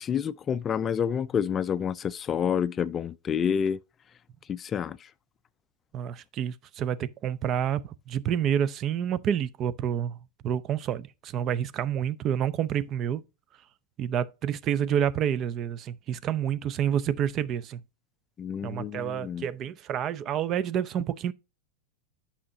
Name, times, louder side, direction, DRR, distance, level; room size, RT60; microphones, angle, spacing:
voice 1, 0.0-3.8 4.5-5.1 18.4-19.5, left 7 dB, 25° left, 0.3 m, -28 dB
voice 2, 5.9-13.2 14.0-17.8 18.6-21.3, right 9 dB, 35° right, 0.5 m, -29 dB
8.6 x 5.6 x 2.7 m
hypercardioid pair, 100°, 0 cm